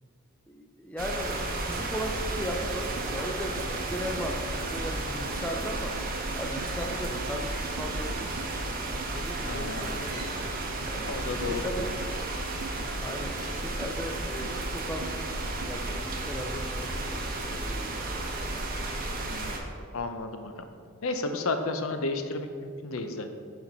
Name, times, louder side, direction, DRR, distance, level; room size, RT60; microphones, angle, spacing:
voice 1, 0.5-7.5 7.8-8.4 8.9-10.5 10.8-11.9 13.0-15.1 15.6-18.3, equal, 5° left, 2 dB, 0.5 m, -37 dB
sound 1, 1.0-19.6, right 2 dB, 40° right, 0.8 m, -33 dB
sound 2, 2.4-16.2, right 4 dB, 85° right, 0.4 m, -46 dB
voice 2, 9.5-10.0 11.0-11.9 19.2-19.6 19.9-20.5 21.0-23.4, left 3 dB, 65° left, 7 dB, 0.6 m, -33 dB
6.4 x 4.5 x 5.3 m, 2.2 s
head